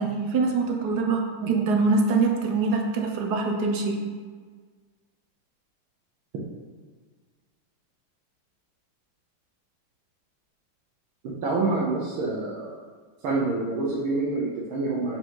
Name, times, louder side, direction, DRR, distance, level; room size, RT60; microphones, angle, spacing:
voice 1, 0.0-4.0, right 4 dB, 60° right, 2 dB, 1.2 m, -24 dB
voice 2, 11.4-12.8 13.2-15.2, right 3 dB, 85° right, -5 dB, 1.8 m, -27 dB
5.1 x 5.1 x 5.5 m, 1.5 s
omnidirectional pair, 2.2 m